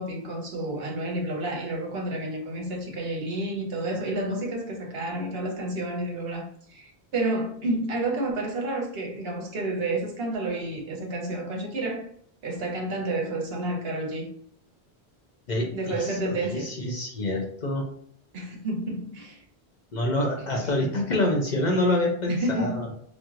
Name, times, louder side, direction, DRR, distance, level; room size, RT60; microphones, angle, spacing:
voice 1, 0.0-12.1 12.4-14.3 15.7-16.7 18.3-19.4 20.6-20.7 22.3-22.8, right 1 dB, 70° right, 1.0 m, -30 dB
voice 2, 15.5-17.9 19.9-22.9, left 1 dB, 55° left, 0.6 m, -26 dB
4.4 x 2.0 x 2.4 m
omnidirectional pair, 1.1 m